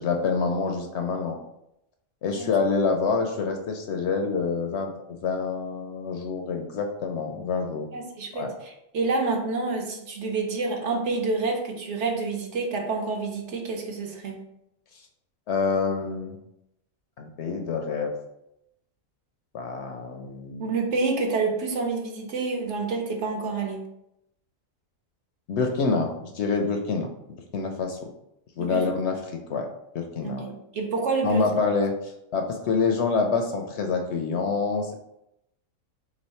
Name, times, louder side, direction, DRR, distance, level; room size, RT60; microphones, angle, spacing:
voice 1, 0.0-1.4 2.2-7.9 8.3-8.5 15.5-16.4 17.2-18.1 19.5-20.7 25.5-27.1 27.5-28.0 28.6-29.7 29.9-30.5 31.2-34.9, left 4 dB, 65° left, 3 dB, 0.7 m, -27 dB
voice 2, 7.9-14.4 20.6-23.8 28.6-28.8 30.2-31.4, right 3 dB, 65° right, 2 dB, 1.0 m, -28 dB
3.6 x 3.1 x 4.1 m, 0.83 s
omnidirectional pair, 1.4 m